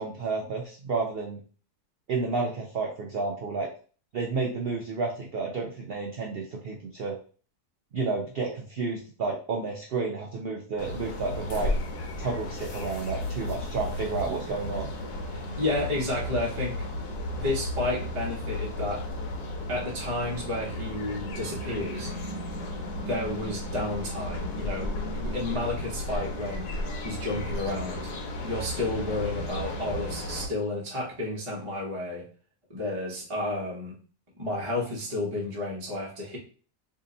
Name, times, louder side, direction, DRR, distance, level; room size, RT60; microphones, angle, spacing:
voice 1, 0.0-1.4 2.1-3.7 4.1-7.2 7.9-11.7 12.2-14.9, right 4 dB, 80° right, 1 dB, 0.5 m, -31 dB
sound 1, 10.8-30.5, left 1 dB, 80° left, 1.3 m, -34 dB
voice 2, 15.3-16.8 17.3-19.0 19.7-22.1 23.1-26.7 27.0-28.1 28.4-32.3 32.7-34.0 34.3-36.4, left 2 dB, 25° right, -4 dB, 0.8 m, -31 dB
2.8 x 2.7 x 3.8 m, 0.40 s
omnidirectional pair, 1.7 m